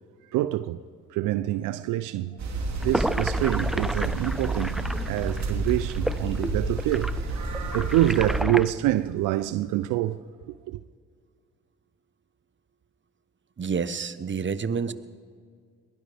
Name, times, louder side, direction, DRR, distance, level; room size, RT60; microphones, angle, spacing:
voice 1, 0.3-0.8 1.1-2.4 2.8-10.8, right 14 dB, 80° right, 0.5 m, -26 dB
sound 1, 2.4-8.4, right 2 dB, 60° right, 2.7 m, -30 dB
sound 2, 2.8-8.7, equal, ahead, 0.6 m, -32 dB
voice 2, 13.6-14.9, right 6 dB, 35° right, 1.0 m, -29 dB
22.0 x 17.5 x 3.5 m
hypercardioid pair, 45°, 31 cm